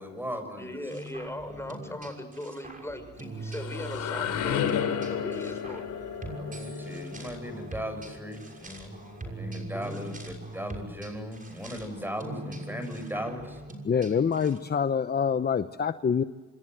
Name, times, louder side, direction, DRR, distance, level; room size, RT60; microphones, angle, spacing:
voice 1, 0.0-0.7 1.8-1.9 6.3-8.9 9.3-10.2 10.5-13.6, equal, 5° right, 9 dB, 7.1 m, -37 dB
voice 2, 0.6-5.8 9.7-10.1 12.2-12.8, left 1 dB, 10° left, 8 dB, 5.5 m, -39 dB
sound 1, 0.9-14.6, right 1 dB, 25° right, 6.3 m, -42 dB
sound 2, 3.2-9.0, left 8 dB, 80° left, 3.0 m, -33 dB
voice 3, 13.8-16.2, left 6 dB, 30° left, 11 dB, 0.9 m, -26 dB
27.5 x 26.0 x 7.9 m, 1.3 s
cardioid pair, 90°, 30 cm